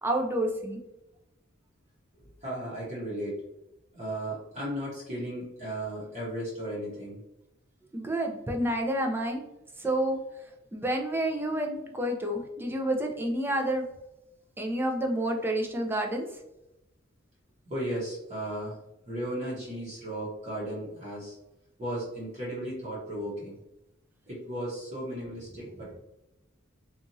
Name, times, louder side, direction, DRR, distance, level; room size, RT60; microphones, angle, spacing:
voice 1, 0.0-0.8 7.9-9.4 9.8-10.2 10.7-13.8 14.6-16.3, right 1 dB, 10° right, 2 dB, 0.4 m, -29 dB
voice 2, 2.4-3.4 3.9-7.2 17.7-18.8 19.1-21.4 21.8-23.6 24.3-26.0, right 1 dB, 35° right, -7 dB, 0.9 m, -35 dB
2.9 x 2.4 x 2.6 m, 0.90 s
head